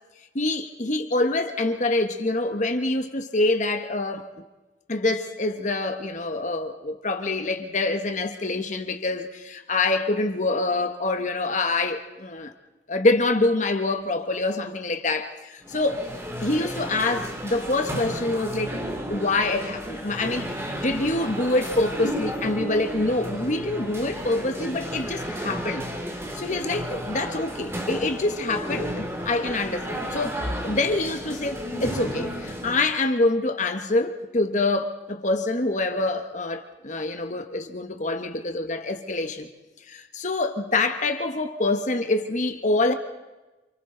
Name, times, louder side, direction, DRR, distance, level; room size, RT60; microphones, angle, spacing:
voice 1, 0.3-4.3 4.9-12.5 12.9-16.1 16.4-18.7 19.1-25.9 26.2-30.4 30.6-39.5 39.9-42.9, left 2 dB, 40° left, 1.3 m, -26 dB
sound 1, 15.6-32.9, equal, 15° right, 2.2 m, -33 dB
28.5 x 28.0 x 4.0 m
head